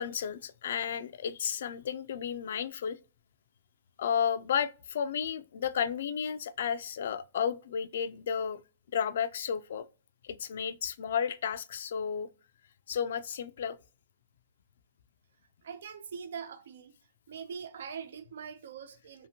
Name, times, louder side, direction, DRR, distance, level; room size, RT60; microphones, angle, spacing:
voice 1, 0.0-3.0 4.0-8.6 8.9-9.9 10.2-12.3 12.9-13.8, left 7 dB, 70° left, 0.3 m, -32 dB
voice 2, 15.6-16.9 17.3-19.3, right 6 dB, 75° right, 0.3 m, -42 dB
2.8 x 2.4 x 2.7 m
hypercardioid pair, 130°, 0 cm